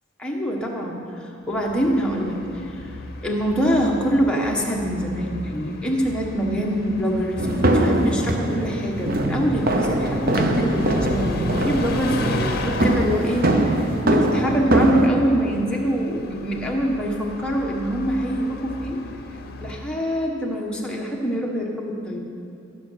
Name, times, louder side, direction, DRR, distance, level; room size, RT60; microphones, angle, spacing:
voice 1, 0.2-2.9 3.2-19.0 19.6-22.2, equal, 5° left, -2 dB, 1.2 m, -25 dB
Bus, 1.4-20.0, left 2 dB, 50° left, 0.8 m, -35 dB
sound 1, 7.4-15.1, right 1 dB, 45° right, 0.8 m, -22 dB
14.5 x 6.5 x 6.3 m, 2.5 s
head